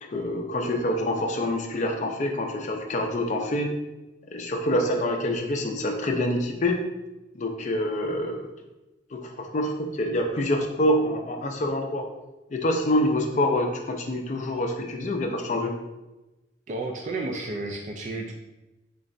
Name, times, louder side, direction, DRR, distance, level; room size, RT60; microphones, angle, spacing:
voice 1, 0.0-3.7 4.3-6.8 7.3-8.5 9.1-12.1 12.5-15.7, left 1 dB, 40° left, 3 dB, 0.4 m, -26 dB
voice 2, 16.7-18.3, right 2 dB, 40° right, 2 dB, 0.3 m, -32 dB
3.9 x 3.1 x 2.6 m, 1.0 s
head